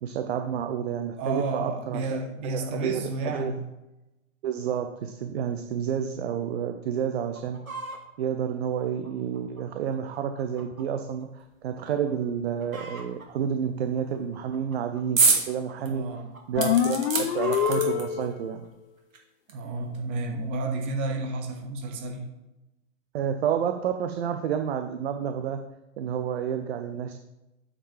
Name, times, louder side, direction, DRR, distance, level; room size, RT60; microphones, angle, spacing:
voice 1, 0.0-2.2 2.4-3.5 4.4-7.6 8.2-16.0 16.5-18.6 23.1-25.6 26.0-27.2, right 8 dB, 50° right, 7 dB, 0.7 m, -30 dB
voice 2, 1.2-3.6 15.8-16.2 19.5-22.2, right 2 dB, 10° right, 3 dB, 0.3 m, -31 dB
Chicken rooster, 7.2-8.0 8.6-10.9 11.2-11.3 11.9-12.1 12.4-13.3 14.0-15.7 16.2-18.0 18.6-18.7, right 3 dB, 85° right, 1.7 m, -39 dB
sound 1, 15.2-15.5 15.9-16.0 16.6-18.2 19.1-19.2 19.5-19.6, right 4 dB, 70° right, 2.1 m, -25 dB
sound 2, 16.6-18.5, left 10 dB, 45° left, 0.6 m, -25 dB
8.8 x 5.0 x 5.0 m, 0.98 s
figure-of-eight pair, 110°, 41 cm